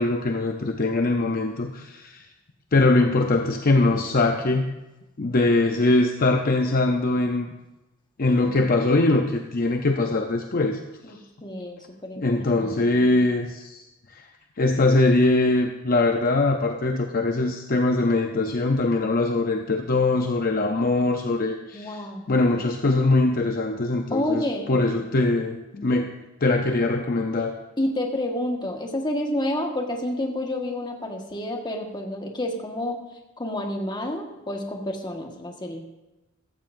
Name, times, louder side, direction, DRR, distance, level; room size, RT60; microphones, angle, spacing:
voice 1, 0.0-2.3 2.7-4.7 5.2-7.5 8.2-10.8 12.2-13.8 14.1-14.3 14.6-26.1 26.4-27.5, left 2 dB, 45° left, 4 dB, 0.7 m, -22 dB
voice 2, 11.0-13.0 21.7-22.3 24.1-24.7 27.8-33.0 33.4-35.9, left 1 dB, 20° left, 1 dB, 1.5 m, -29 dB
15.0 x 13.5 x 2.6 m, 1.0 s
head